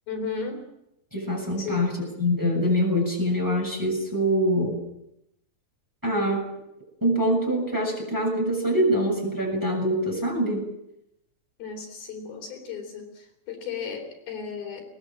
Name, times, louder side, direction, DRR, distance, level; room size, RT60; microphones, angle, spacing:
voice 1, 0.1-0.7 1.6-1.9 11.6-14.9, left 5 dB, 70° left, 3 dB, 5.5 m, -35 dB
voice 2, 1.1-4.8 6.0-6.4 7.0-10.6, equal, 5° right, 1 dB, 6.9 m, -24 dB
23.0 x 20.0 x 7.6 m, 0.85 s
omnidirectional pair, 4.3 m